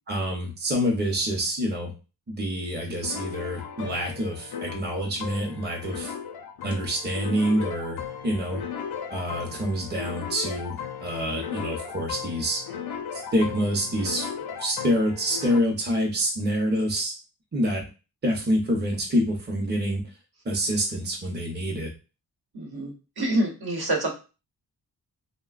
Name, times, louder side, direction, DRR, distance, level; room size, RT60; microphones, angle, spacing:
voice 1, 0.1-1.9 2.3-6.1 6.6-8.6 9.1-12.6 13.1-14.3 14.6-17.1 17.5-17.8 18.2-20.1 20.4-21.9, equal, 25° right, 0 dB, 0.7 m, -27 dB
sound 1, 3.0-15.6, left 7 dB, 65° left, 0.5 m, -36 dB
voice 2, 22.5-24.1, right 1 dB, 65° right, 1 dB, 0.9 m, -27 dB
3.2 x 2.1 x 2.4 m, 0.31 s
wide cardioid pair, 115°, 41 cm